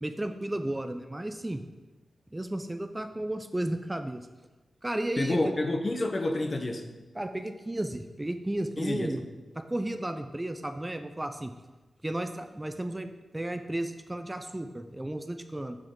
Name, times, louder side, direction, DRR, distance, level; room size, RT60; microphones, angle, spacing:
voice 1, 0.0-1.6 2.3-4.3 4.8-5.6 7.2-9.2 9.6-11.5 12.0-13.1 13.3-15.8, right 1 dB, 15° right, 7 dB, 0.5 m, -33 dB
voice 2, 5.2-6.8 8.8-9.1, left 2 dB, 40° left, 5 dB, 0.9 m, -29 dB
7.6 x 7.6 x 3.7 m, 1.2 s
cardioid pair, 65°, 0 cm